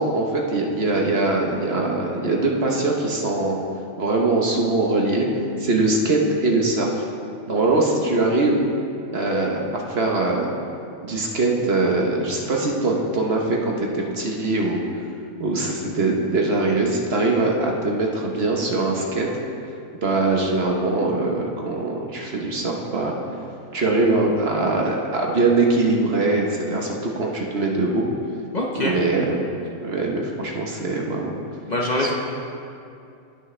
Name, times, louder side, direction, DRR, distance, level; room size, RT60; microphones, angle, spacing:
voice 1, 0.0-3.6 4.0-5.3 5.6-7.0 7.5-8.6 9.1-10.5 11.0-14.8 15.4-19.3 20.0-23.1 23.7-28.0 28.8-29.4 29.8-31.4 32.0-32.1, right 2 dB, 50° right, 0 dB, 1.2 m, -22 dB
voice 2, 28.5-28.9 31.7-32.1, left 1 dB, 35° left, -2 dB, 1.0 m, -23 dB
18.0 x 6.2 x 3.3 m, 2.5 s
omnidirectional pair, 1.4 m